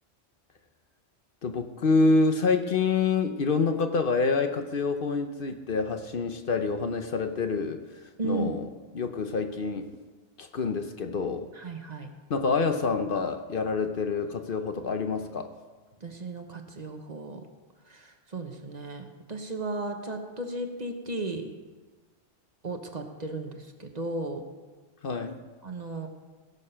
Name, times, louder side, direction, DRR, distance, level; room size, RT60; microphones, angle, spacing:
voice 1, 1.4-7.8 8.2-8.7 8.9-9.9 10.4-11.5 12.3-15.5 25.0-25.4, left 4 dB, 55° left, 7 dB, 0.9 m, -27 dB
voice 2, 8.2-8.6 11.5-12.1 16.0-17.4 17.9-21.5 22.6-24.4 25.6-26.1, right 2 dB, 40° right, 5 dB, 1.1 m, -35 dB
17.0 x 6.9 x 5.6 m, 1.3 s
omnidirectional pair, 1.2 m